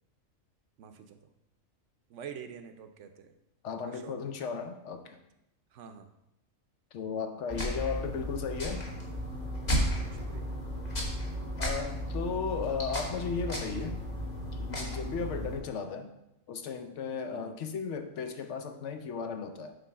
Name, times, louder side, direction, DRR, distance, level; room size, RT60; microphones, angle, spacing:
voice 1, 0.8-1.3 2.1-3.3 3.8-4.3 5.7-6.1 10.1-10.5 15.2-15.4 17.3-17.6, right 7 dB, 70° right, 7 dB, 0.9 m, -47 dB
voice 2, 3.6-5.2 6.9-8.9 11.6-14.0 14.5-16.1 16.5-19.8, left 5 dB, 65° left, 7 dB, 0.9 m, -35 dB
sound 1, 7.5-15.6, equal, 35° left, 1.2 m, -34 dB
sound 2, 9.3-13.4, left 1 dB, 10° left, 0.6 m, -57 dB
7.7 x 3.2 x 5.6 m, 0.86 s
omnidirectional pair, 1.4 m